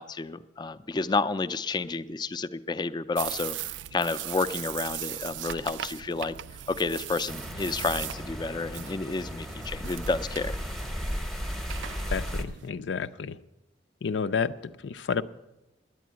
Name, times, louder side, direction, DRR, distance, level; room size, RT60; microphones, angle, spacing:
voice 1, 0.0-6.4 6.7-10.5, left 3 dB, 25° left, 11 dB, 0.4 m, -30 dB
sound 1, 3.2-12.7, right 12 dB, 85° right, 0.3 m, -39 dB
sound 2, 7.3-12.4, equal, ahead, 0.7 m, -35 dB
voice 2, 12.1-13.4 14.0-15.2, left 6 dB, 90° left, 12 dB, 0.5 m, -30 dB
9.4 x 9.4 x 9.2 m, 0.97 s
head